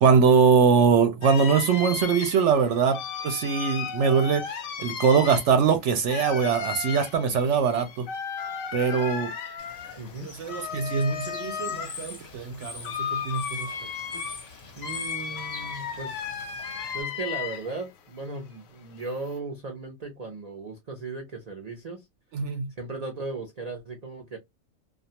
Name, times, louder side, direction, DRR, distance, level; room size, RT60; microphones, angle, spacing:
voice 1, 0.0-3.0 3.2-8.1 8.7-9.3 10.2-13.7 22.3-22.7, right 6 dB, 65° right, 0.8 m, -22 dB
sound 1, 1.2-17.9 18.2-19.4, left 7 dB, 90° left, 1.1 m, -35 dB
Bird / Water, 9.6-17.0, left 3 dB, 40° left, 0.7 m, -44 dB
voice 2, 10.0-10.3 14.8-16.6 16.9-22.1 22.5-24.4, right 3 dB, 50° right, 0.4 m, -37 dB
2.4 x 2.3 x 2.7 m
omnidirectional pair, 1.4 m